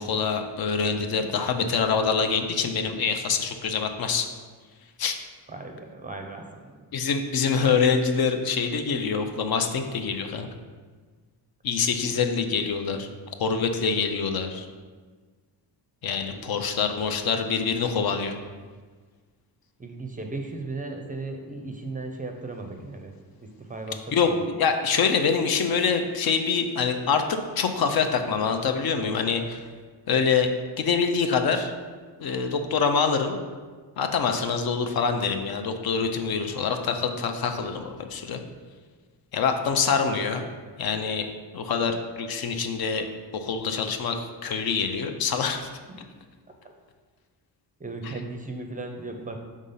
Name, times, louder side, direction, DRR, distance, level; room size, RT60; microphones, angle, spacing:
voice 1, 0.0-4.3 5.0-5.1 6.9-10.5 11.6-13.1 13.4-14.7 16.0-18.4 24.1-24.3 24.6-29.6 30.1-30.5 30.8-31.7 32.2-33.4 34.0-38.4 39.3-40.4 40.8-41.3 41.5-43.1 43.3-45.7 48.0-48.1, left 5 dB, 60° left, 6 dB, 0.6 m, -25 dB
voice 2, 5.5-6.5 6.7-6.8 16.3-16.6 19.8-23.1 23.4-24.4 47.8-49.4, right 2 dB, 20° right, 4 dB, 0.4 m, -36 dB
5.4 x 3.6 x 5.5 m, 1.5 s
wide cardioid pair, 150°, 41 cm